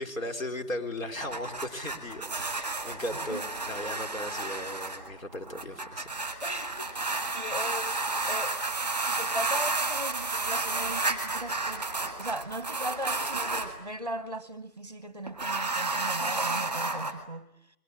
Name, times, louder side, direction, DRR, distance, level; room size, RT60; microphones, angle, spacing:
voice 1, 0.0-6.2, left 1 dB, 60° left, 5 dB, 4.5 m, -37 dB
sound 1, 1.0-13.7 15.3-17.1, right 3 dB, 10° right, 1.6 m, -32 dB
voice 2, 6.4-8.6 9.1-17.8, right 1 dB, 25° right, 15 dB, 0.9 m, -38 dB
30.0 x 22.0 x 8.4 m, 0.84 s
figure-of-eight pair, 175°, 45 cm